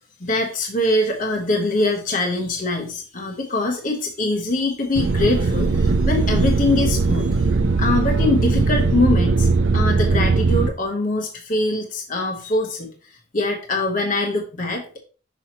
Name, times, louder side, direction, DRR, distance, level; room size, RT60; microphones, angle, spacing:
voice 1, 0.2-12.9 13.3-15.0, left 2 dB, 45° left, 2 dB, 0.9 m, -23 dB
sound 1, 4.9-10.7, right 3 dB, 80° right, 0.5 m, -19 dB
5.9 x 5.5 x 2.9 m, 0.36 s
head